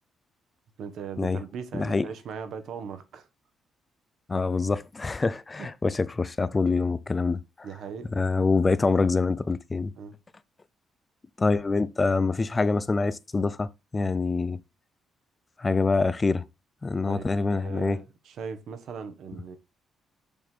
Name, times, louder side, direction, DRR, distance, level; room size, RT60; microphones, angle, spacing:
voice 1, 0.8-3.3 5.6-5.7 7.6-8.1 10.0-10.2 17.1-19.6, right 6 dB, 70° right, 1.3 m, -39 dB
voice 2, 1.7-2.1 4.3-7.7 8.1-9.9 11.4-14.6 15.6-16.4 16.8-18.0, left 3 dB, 25° left, 0.5 m, -25 dB
7.0 x 3.6 x 6.2 m
cardioid pair, 90°, 0 cm